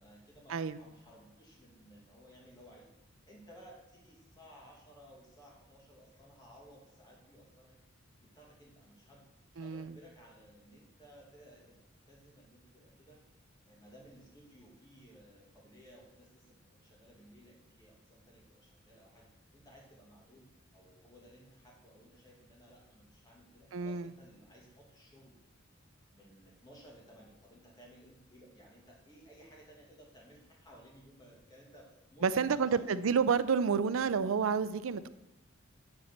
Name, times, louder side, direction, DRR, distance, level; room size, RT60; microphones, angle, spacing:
voice 1, 0.0-2.9 3.2-7.8 8.2-9.3 9.5-13.2 13.7-20.5 20.7-25.4 26.1-33.1, equal, 20° left, -3 dB, 2.3 m, -58 dB
voice 2, 9.6-9.9 23.7-24.1 32.2-35.1, right 6 dB, 70° right, 13 dB, 0.5 m, -29 dB
9.6 x 4.3 x 6.5 m, 0.93 s
head